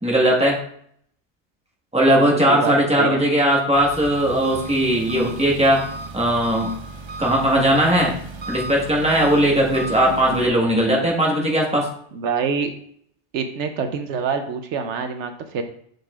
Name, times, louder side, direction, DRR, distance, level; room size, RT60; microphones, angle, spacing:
voice 1, 0.0-0.6 1.9-5.8 6.1-6.7 7.2-8.1 8.5-11.9, right 1 dB, 5° right, -2 dB, 1.2 m, -18 dB
voice 2, 2.1-3.2 12.1-12.7 13.3-15.6, right 5 dB, 75° right, 7 dB, 0.9 m, -26 dB
Engine, 3.7-10.5, right 2 dB, 45° right, 0.3 m, -34 dB
6.5 x 6.4 x 2.4 m, 0.64 s
omnidirectional pair, 1.2 m